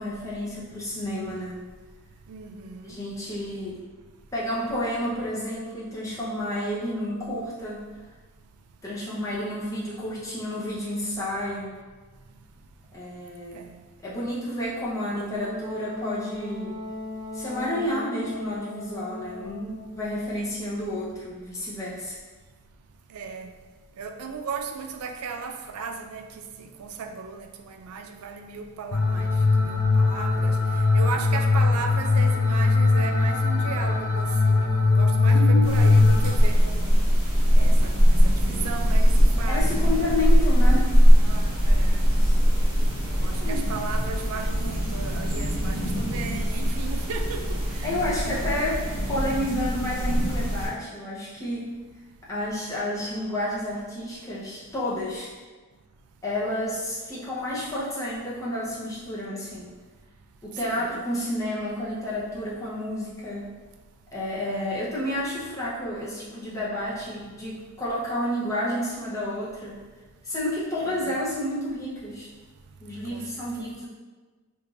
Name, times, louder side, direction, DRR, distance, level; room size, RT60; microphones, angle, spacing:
voice 1, 0.0-1.6 2.8-3.8 4.3-7.8 8.8-11.7 12.9-13.6 14.0-16.8 17.3-22.2 35.3-35.7 39.5-40.9 43.4-43.6 47.8-48.8 49.1-51.6 52.3-55.3 56.2-59.7 60.4-63.4 64.1-69.8 70.2-72.3 72.8-73.9, left 1 dB, 15° left, -8 dB, 0.8 m, -30 dB
voice 2, 2.3-3.0 12.3-12.5 13.5-13.9 23.1-23.5 24.0-40.2 41.2-42.1 43.1-48.0 48.3-48.6 60.6-60.9 64.5-64.7 70.8-71.1 72.7-73.7, right 5 dB, 85° right, 5 dB, 0.4 m, -36 dB
Wind instrument woodwind instrument, 15.4-20.2, left 1 dB, 10° right, 1.4 m, -37 dB
sound 1, 28.9-36.3, left 3 dB, 60° left, 0.5 m, -20 dB
sound 2, 35.6-50.7, equal, 45° right, 1.1 m, -21 dB
4.7 x 2.5 x 2.5 m, 1.4 s
head